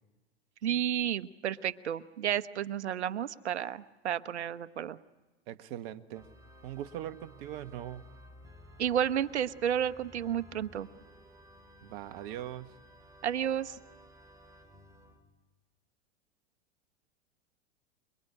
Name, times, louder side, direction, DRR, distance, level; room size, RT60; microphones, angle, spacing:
voice 1, 0.6-5.0 8.8-10.9 13.2-13.7, right 10 dB, 90° right, 13 dB, 1.1 m, -31 dB
voice 2, 5.5-6.3 6.6-8.0 11.8-12.7, right 12 dB, 60° right, 10 dB, 1.6 m, -41 dB
Organ, 6.1-15.2, equal, 10° right, 4.5 m, -55 dB
27.5 x 21.5 x 9.9 m, 1.2 s
hypercardioid pair, 105°, 33 cm